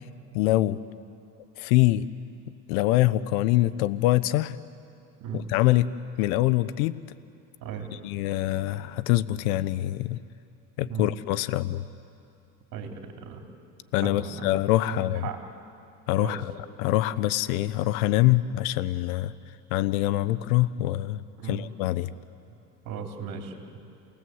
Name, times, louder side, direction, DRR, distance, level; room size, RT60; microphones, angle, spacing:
voice 1, 0.3-0.8 1.6-2.1 2.7-4.6 5.3-5.9 6.2-7.0 8.0-10.2 10.8-11.8 13.9-15.3 16.1-16.5 16.8-19.3 19.7-22.1, left 16 dB, 80° left, 17 dB, 0.7 m, -24 dB
voice 2, 12.7-13.4 14.0-14.5 14.8-15.4 16.2-16.4 21.4-21.6 22.9-23.5, right 6 dB, 50° right, 2 dB, 3.6 m, -36 dB
29.5 x 19.0 x 7.8 m, 2.6 s
supercardioid pair, 105°, 41 cm